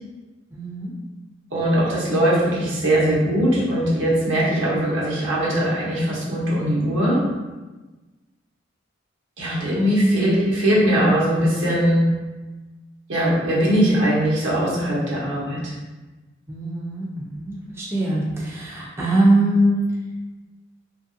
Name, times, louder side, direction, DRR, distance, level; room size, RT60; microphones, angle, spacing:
voice 1, 0.5-0.9 16.5-19.8, right 1 dB, 15° right, -5 dB, 0.4 m, -22 dB
voice 2, 1.5-7.2 9.4-12.0 13.1-15.7, right 1 dB, 80° right, -6 dB, 0.9 m, -20 dB
2.8 x 2.5 x 2.6 m, 1.2 s
head